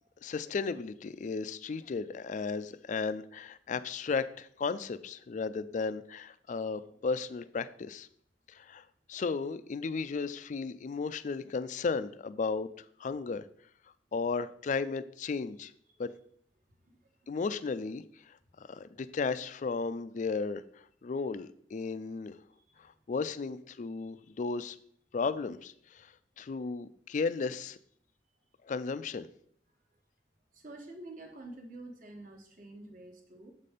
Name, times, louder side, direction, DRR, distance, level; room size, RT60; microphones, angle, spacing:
voice 1, 0.2-8.1 8.5-13.5 14.1-15.7 16.0-16.1 17.3-22.4 22.8-24.8 25.1-27.8 28.6-29.3, left 4 dB, 40° left, 13 dB, 0.3 m, -35 dB
voice 2, 16.8-17.3 22.6-22.8 30.5-33.5, right 2 dB, 45° right, 3 dB, 1.2 m, -49 dB
7.3 x 4.2 x 5.0 m, 0.62 s
head